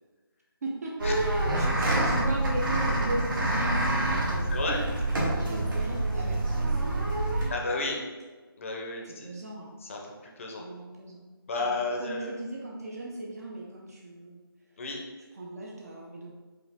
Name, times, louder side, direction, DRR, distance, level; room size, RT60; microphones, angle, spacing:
voice 1, 0.6-4.5 5.5-7.6 9.1-9.7 10.6-11.2 11.6-14.4 15.4-16.3, right 1 dB, 40° right, -2 dB, 0.6 m, -38 dB
sound 1, 1.0-7.5, right 1 dB, 55° right, 1.2 m, -27 dB
voice 2, 4.5-4.8 7.5-8.0 8.6-9.3 9.8-10.6 11.5-12.3 14.8-15.0, left 3 dB, 35° left, 0 dB, 0.7 m, -32 dB
4.8 x 2.5 x 3.5 m, 1.3 s
figure-of-eight pair, 160°, 13 cm